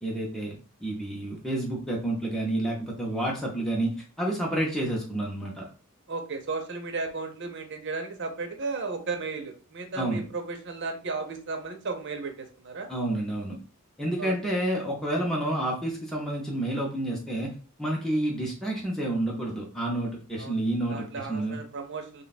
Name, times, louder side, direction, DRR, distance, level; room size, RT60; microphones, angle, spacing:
voice 1, 0.0-3.9 4.2-5.6 10.0-10.2 12.9-13.6 14.0-17.5 17.8-21.6, right 1 dB, ahead, -3 dB, 0.6 m, -29 dB
voice 2, 6.1-12.9 14.2-14.3 20.4-20.6 20.9-22.2, right 4 dB, 55° right, 4 dB, 0.7 m, -34 dB
3.3 x 2.2 x 4.0 m, 0.38 s
head